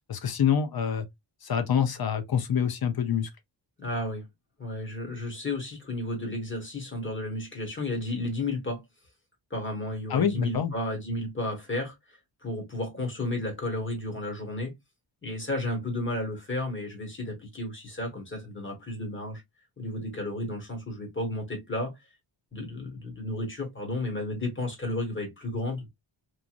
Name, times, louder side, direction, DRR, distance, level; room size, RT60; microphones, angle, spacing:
voice 1, 0.1-1.1 1.4-3.3 10.1-10.7, left 8 dB, 50° left, 0.6 m, -26 dB
voice 2, 3.8-4.3 4.6-8.8 9.5-14.7 15.2-19.4 19.8-21.9 22.5-25.9, left 1 dB, 25° left, 1.3 m, -33 dB
3.1 x 2.5 x 2.4 m
wide cardioid pair, 155°, 47 cm